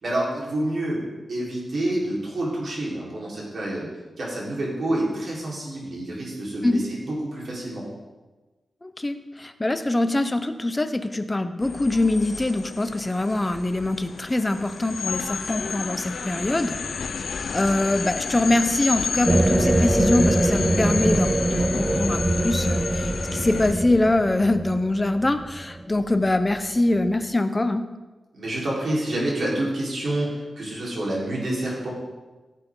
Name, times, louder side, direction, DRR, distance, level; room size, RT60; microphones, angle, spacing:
voice 1, 0.0-1.0 1.3-3.9 4.2-7.8 28.3-31.9, right 1 dB, 65° right, -4 dB, 4.1 m, -28 dB
voice 2, 8.8-16.8 17.5-27.8, left 2 dB, 20° left, 9 dB, 0.8 m, -23 dB
sound 1, 11.6-23.7, left 5 dB, 75° left, 0.7 m, -31 dB
sound 2, 19.2-26.5, right 1 dB, 20° right, 0.3 m, -23 dB
16.5 x 8.0 x 3.8 m, 1.2 s
wide cardioid pair, 110°, 0 cm